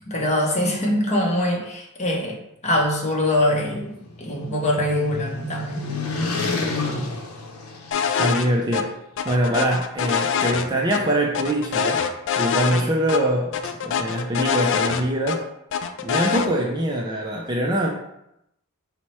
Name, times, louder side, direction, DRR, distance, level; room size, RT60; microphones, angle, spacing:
voice 1, 0.1-2.4 2.6-3.9 4.2-5.8, left 1 dB, 30° left, -2 dB, 0.8 m, -23 dB
sound 1, 3.6-8.4, left 3 dB, 75° left, 0.7 m, -30 dB
sound 2, 7.9-8.5 8.7-8.8 9.2-11.0 11.3-12.8 13.1-13.2 13.5-15.4 15.7-16.5, left 7 dB, 55° left, 0.3 m, -24 dB
voice 2, 8.2-9.0 9.2-12.1 12.4-15.4 16.0-17.9, right 1 dB, 20° right, -1 dB, 0.4 m, -23 dB
4.5 x 2.1 x 4.2 m, 0.82 s
head